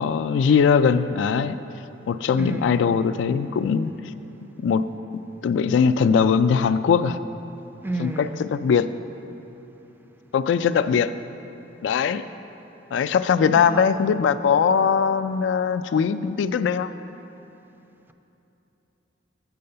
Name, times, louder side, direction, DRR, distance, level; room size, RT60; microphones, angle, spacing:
voice 1, 0.0-1.6 2.1-3.9 4.6-4.9 5.1-7.2 8.0-8.9 10.3-11.1 11.8-12.2 12.9-16.9, left 6 dB, 75° left, 0.3 m, -21 dB
voice 2, 2.4-2.7 7.8-8.4 13.4-13.8, right 2 dB, 10° right, 0.4 m, -30 dB
7.7 x 6.9 x 6.6 m
head